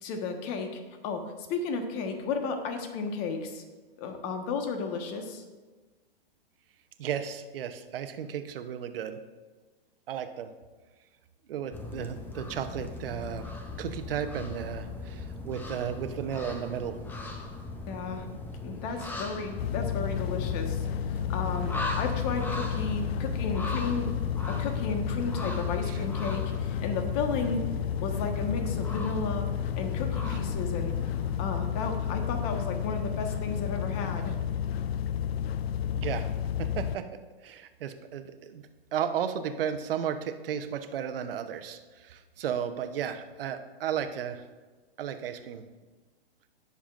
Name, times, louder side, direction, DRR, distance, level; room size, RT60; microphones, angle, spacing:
voice 1, 0.0-3.6 4.0-5.4 17.9-18.3 18.6-24.1 24.5-27.6 28.0-29.5 29.7-30.9 31.4-34.4, left 4 dB, 40° left, 5 dB, 1.4 m, -33 dB
voice 2, 7.0-9.2 10.1-10.5 11.5-17.0 25.9-26.0 36.0-36.3 36.6-37.1 37.4-38.6 38.9-44.4 45.0-45.6, right 8 dB, 65° right, 8 dB, 0.9 m, -34 dB
sound 1, 11.7-31.4, left 2 dB, 5° left, 0.6 m, -39 dB
sound 2, 19.6-37.0, left 9 dB, 80° left, 0.5 m, -31 dB
18.0 x 7.0 x 2.5 m, 1.3 s
hypercardioid pair, 135°, 31 cm